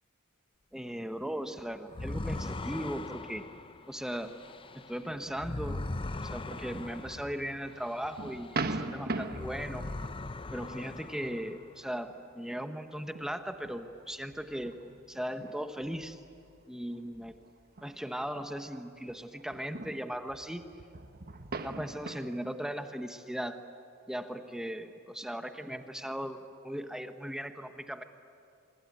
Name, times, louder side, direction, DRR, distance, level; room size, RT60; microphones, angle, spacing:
voice 1, 0.7-3.4 3.9-4.3 4.7-9.9 10.5-14.8 15.1-16.2 16.7-17.3 17.8-20.7 21.6-23.6 24.1-28.0, equal, 5° right, 7 dB, 0.9 m, -38 dB
sound 1, 1.9-8.8 9.2-11.8, left 2 dB, 25° left, 0.6 m, -40 dB
sound 2, 5.1-10.7 11.2-11.4 12.0-12.6 13.1-18.8 19.1-22.4, right 3 dB, 45° right, 1.3 m, -41 dB
25.5 x 24.5 x 9.3 m, 2.6 s
head